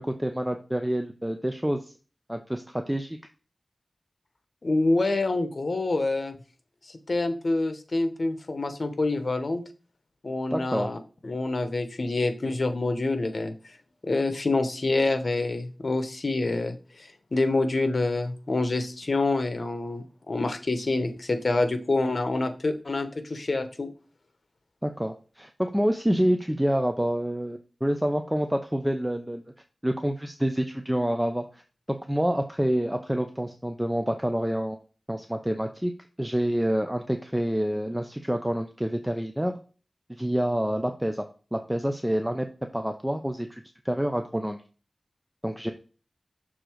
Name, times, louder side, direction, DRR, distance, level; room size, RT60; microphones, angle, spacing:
voice 1, 0.0-1.9 2.3-3.2 10.5-10.9 24.8-29.4 29.8-31.6 31.9-34.8 35.1-35.9 36.2-39.6 40.1-42.5 42.7-44.6 45.4-45.7, equal, 10° right, 5 dB, 0.6 m, -27 dB
voice 2, 4.6-6.4 7.1-9.6 10.2-11.0 11.2-13.5 14.0-23.9, left 2 dB, 60° left, 8 dB, 1.0 m, -27 dB
6.7 x 3.8 x 4.6 m, 0.36 s
wide cardioid pair, 65°, 0 cm